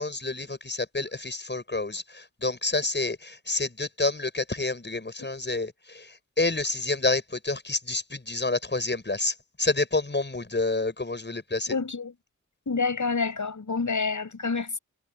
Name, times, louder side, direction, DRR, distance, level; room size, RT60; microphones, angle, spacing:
voice 1, 0.0-6.1 6.4-11.7, left 2 dB, 35° left, 7.2 m, -28 dB
voice 2, 11.7-12.1 12.7-14.8, left 4 dB, 70° left, 6.3 m, -28 dB
wide cardioid pair, 75°, 31 cm